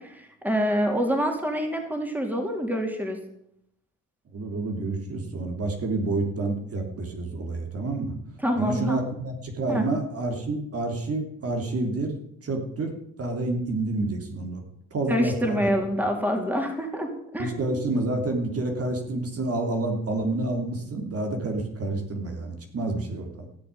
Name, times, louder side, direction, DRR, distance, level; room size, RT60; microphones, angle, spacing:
voice 1, 0.0-3.2 8.4-9.0 9.7-9.9 15.1-17.8, equal, 5° right, 3 dB, 3.3 m, -27 dB
voice 2, 4.3-8.1 8.5-12.1 12.4-12.9 13.2-14.6 14.9-15.7 17.4-23.5, right 2 dB, 50° right, 3 dB, 3.1 m, -28 dB
16.5 x 6.9 x 9.1 m, 0.74 s
cardioid pair, 90°, 30 cm